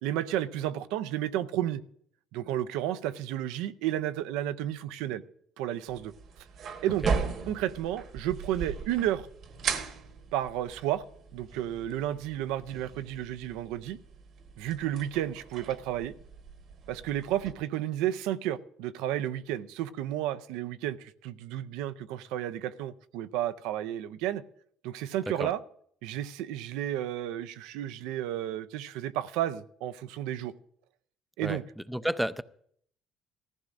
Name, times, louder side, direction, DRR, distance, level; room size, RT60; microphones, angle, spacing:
voice 1, 0.0-1.8 2.3-5.2 5.6-6.1 6.8-7.1 7.5-9.3 10.3-11.0 11.3-14.0 14.6-16.1 16.9-24.4 24.8-25.6 26.0-30.5 31.4-31.6, right 12 dB, 85° right, 0.5 m, -32 dB
sound 1, 5.9-17.5, right 5 dB, 60° right, 1.2 m, -38 dB
voice 2, 31.9-32.4, right 1 dB, 5° right, 0.5 m, -30 dB
19.0 x 14.5 x 2.5 m
supercardioid pair, 80°, 0 cm